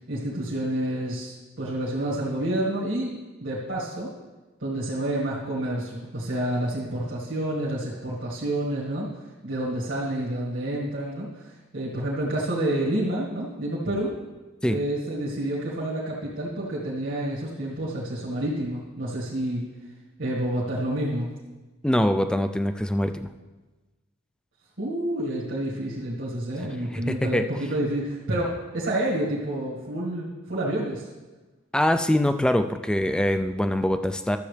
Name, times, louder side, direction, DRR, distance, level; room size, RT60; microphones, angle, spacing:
voice 1, 0.1-3.1 3.4-4.1 4.6-9.1 9.4-14.1 14.6-19.6 20.2-21.3 24.8-31.1, right 1 dB, 65° right, -7 dB, 1.9 m, -29 dB
voice 2, 21.8-23.3 26.9-27.5 31.7-34.4, left 1 dB, 5° left, 9 dB, 0.3 m, -23 dB
13.0 x 7.3 x 3.4 m, 1.2 s
head